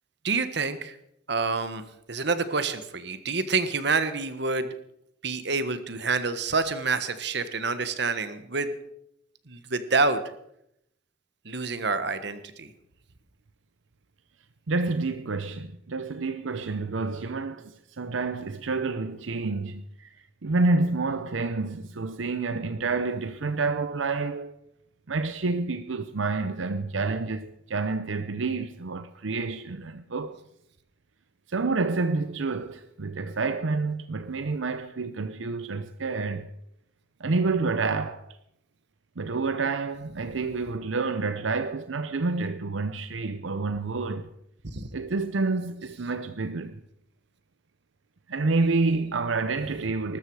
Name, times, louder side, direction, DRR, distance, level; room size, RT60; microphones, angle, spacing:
voice 1, 0.2-1.0 1.3-4.7 5.2-8.7 9.5-10.3 11.4-12.7 44.7-44.9, right 4 dB, 60° right, 1.4 m, -27 dB
voice 2, 14.7-20.2 20.4-24.5 25.1-30.4 31.5-36.5 37.2-38.3 39.2-44.3 44.9-46.8 48.3-50.2, right 3 dB, 80° right, 0.7 m, -28 dB
20.0 x 13.5 x 4.8 m
head